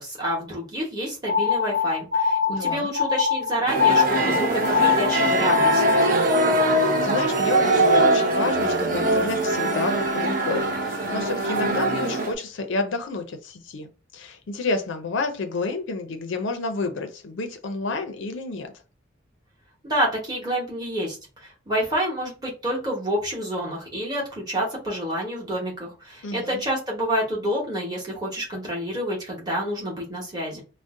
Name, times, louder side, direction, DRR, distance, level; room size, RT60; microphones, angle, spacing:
voice 1, 0.0-6.1 19.8-30.6, equal, 20° right, 0.9 m, -28 dB
sound 1, 1.3-6.2, left 7 dB, 75° right, 1.2 m, -23 dB
voice 2, 2.5-2.9 6.7-18.7 26.2-26.6, left 3 dB, 65° left, 0.4 m, -30 dB
sound 2, 3.7-12.3, right 2 dB, 40° right, 0.6 m, -22 dB
2.5 x 2.0 x 3.5 m
head